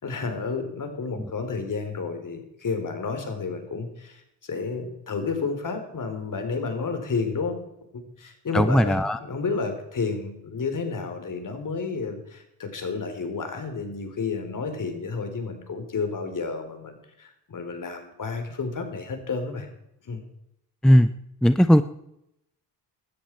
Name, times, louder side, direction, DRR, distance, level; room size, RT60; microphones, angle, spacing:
voice 1, 0.0-7.6 7.9-19.7 20.0-20.2, left 4 dB, 45° left, 6 dB, 3.7 m, -31 dB
voice 2, 8.5-9.2 20.8-21.1 21.4-21.8, equal, ahead, 13 dB, 0.6 m, -17 dB
17.0 x 13.0 x 4.5 m, 0.80 s
supercardioid pair, 70°, 43 cm